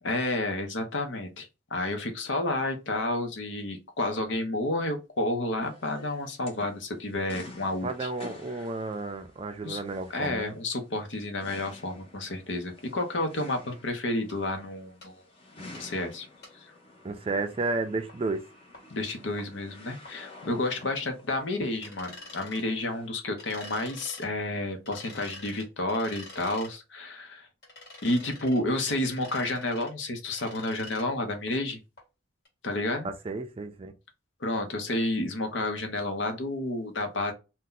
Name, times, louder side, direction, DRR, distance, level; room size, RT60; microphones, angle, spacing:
voice 1, 0.0-8.1 9.6-9.8 10.1-15.2 15.8-16.3 16.5-16.7 18.9-27.5 28.0-31.8 32.6-33.1 34.4-37.3, left 2 dB, 70° left, 0.7 m, -30 dB
sound 1, 5.6-23.1, left 2 dB, 30° left, 0.8 m, -50 dB
voice 2, 7.8-10.5 17.0-18.4 33.0-33.9, right 3 dB, 30° right, 0.4 m, -32 dB
sound 2, 14.3-14.4 15.0-15.1 15.7-15.8 16.4-16.5 18.1-18.2 18.7-18.8 19.4-19.5 20.1-20.2 20.8-20.9 21.8-22.6 23.4-24.3 24.9-26.7 27.6-28.6 28.9-29.9 30.3-31.1 31.5-31.6 32.0-32.1 32.5-32.6, left 2 dB, 55° left, 1.6 m, -46 dB
2.7 x 2.2 x 3.7 m
head